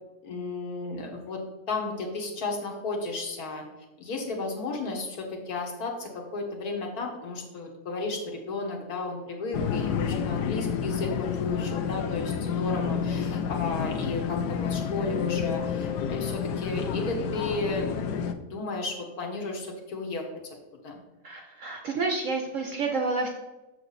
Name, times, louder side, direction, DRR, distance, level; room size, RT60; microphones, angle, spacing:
voice 1, 0.2-1.4 1.7-3.6 4.0-17.9 18.5-20.6 20.8-21.0, left 3 dB, 60° left, 1 dB, 1.6 m, -33 dB
sound 1, 9.5-18.3, left 7 dB, 75° left, 1.1 m, -29 dB
voice 2, 21.2-23.3, right 3 dB, 60° right, 3 dB, 0.9 m, -29 dB
6.8 x 6.0 x 4.0 m, 1.1 s
omnidirectional pair, 1.9 m